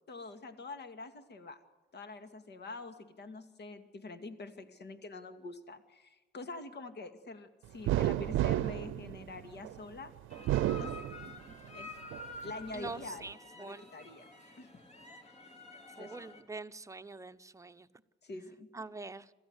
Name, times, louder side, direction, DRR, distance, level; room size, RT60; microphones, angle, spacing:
voice 1, 0.1-1.6 1.9-10.1 10.8-11.0 11.7-11.9 12.4-14.3 14.6-14.7 15.9-16.2 18.2-18.7, left 3 dB, 55° left, 2.4 m, -46 dB
sound 1, 7.9-9.8 10.3-11.7 12.1-13.0, right 14 dB, 85° right, 0.6 m, -32 dB
sound 2, 10.3-16.4, left 3 dB, 35° left, 3.2 m, -50 dB
voice 2, 12.7-13.8 16.0-17.9 18.7-19.3, right 3 dB, 15° right, 0.9 m, -44 dB
27.0 x 14.5 x 8.2 m
cardioid pair, 90°, 20 cm